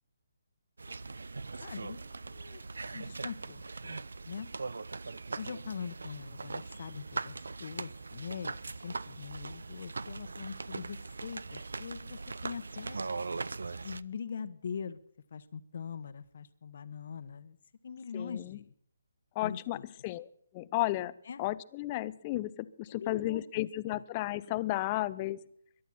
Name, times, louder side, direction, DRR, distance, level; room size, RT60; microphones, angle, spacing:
sound 1, 0.8-14.0, right 3 dB, 75° right, 0.5 m, -40 dB
voice 1, 1.6-2.6 2.9-4.5 5.4-13.0 13.8-15.0 15.3-17.6 17.8-18.7 19.4-19.8 21.2-21.4 22.9-24.0, left 6 dB, 55° left, 12 dB, 1.1 m, -43 dB
voice 2, 18.1-18.6 19.4-19.8 20.0-20.3 20.5-25.4, left 17 dB, 30° left, 17 dB, 0.6 m, -33 dB
22.5 x 12.0 x 4.3 m, 0.66 s
figure-of-eight pair, 145°, 0 cm